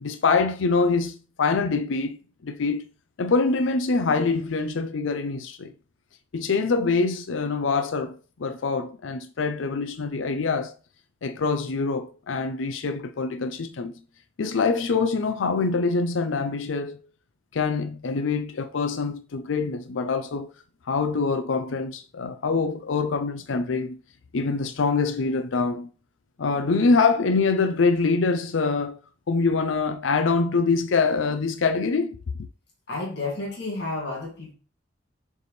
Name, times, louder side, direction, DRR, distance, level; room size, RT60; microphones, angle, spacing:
voice 1, 0.0-2.2 2.4-2.8 3.2-5.7 6.3-10.7 11.2-13.9 14.4-17.0 17.5-20.5 20.9-24.0 24.3-25.9 26.4-29.0 29.3-32.2, left 4 dB, 80° left, 0.5 m, -24 dB
voice 2, 32.9-34.5, left 2 dB, 60° left, 2.1 m, -31 dB
6.8 x 4.6 x 3.2 m
head